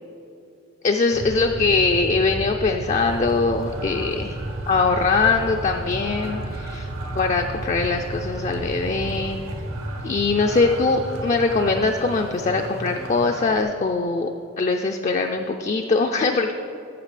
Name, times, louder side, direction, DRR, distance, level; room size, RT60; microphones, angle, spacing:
voice 1, 0.8-4.4 4.7-6.9 7.1-9.4 10.0-14.3 14.6-16.5, left 4 dB, 35° left, 4 dB, 0.3 m, -22 dB
sound 1, 1.1-11.9, right 1 dB, 45° right, 0.5 m, -33 dB
sound 2, 2.9-13.6, right 1 dB, 80° right, 1.2 m, -37 dB
11.5 x 7.1 x 3.3 m, 2.8 s
head